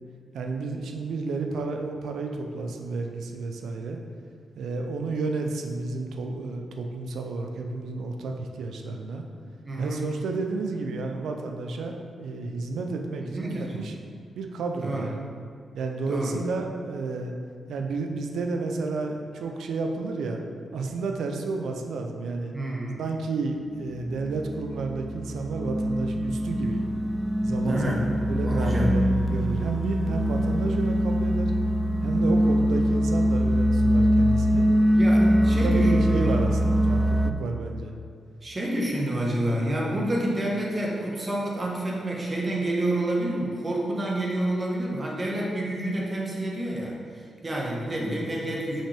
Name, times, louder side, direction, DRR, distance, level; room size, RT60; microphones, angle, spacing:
voice 1, 0.3-4.0 4.6-9.2 9.8-13.9 14.4-15.2 15.7-17.3 17.7-20.4 20.7-22.5 23.0-26.8 27.4-28.0 28.3-31.5 32.0-34.7 35.3-36.6 36.9-37.9, right 3 dB, 85° right, 3 dB, 0.5 m, -31 dB
voice 2, 9.6-10.1 13.2-13.8 14.8-15.1 16.1-16.4 22.5-23.0 27.6-28.0 28.4-28.9 34.9-36.4 38.4-48.8, right 1 dB, 35° right, -3 dB, 1.3 m, -29 dB
sound 1, 24.1-37.3, equal, ahead, 0.3 m, -23 dB
5.7 x 5.6 x 3.4 m, 2.2 s
cardioid pair, 75°, 0 cm